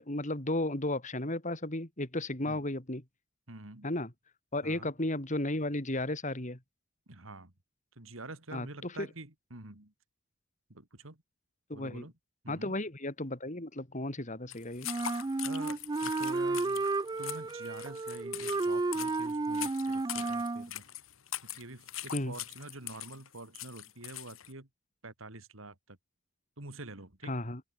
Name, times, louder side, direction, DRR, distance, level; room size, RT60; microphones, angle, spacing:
voice 1, 0.0-3.0 3.8-4.1 4.5-6.6 8.5-9.1 11.7-12.1 12.5-14.9 22.1-22.3 27.3-27.6, left 1 dB, 35° left, 3.3 m, -34 dB
voice 2, 3.5-3.9 4.6-4.9 7.1-7.5 7.9-9.9 10.7-11.2 11.7-12.1 12.4-12.8 15.4-16.8 17.2-20.9 21.4-24.7 25.0-26.0 26.6-27.3, right 2 dB, 75° right, 3.2 m, -47 dB
sound 1, 14.5-24.5, left 12 dB, 80° left, 1.6 m, -42 dB
Wind instrument woodwind instrument, 14.8-20.7, right 3 dB, 20° right, 0.3 m, -32 dB
open air
head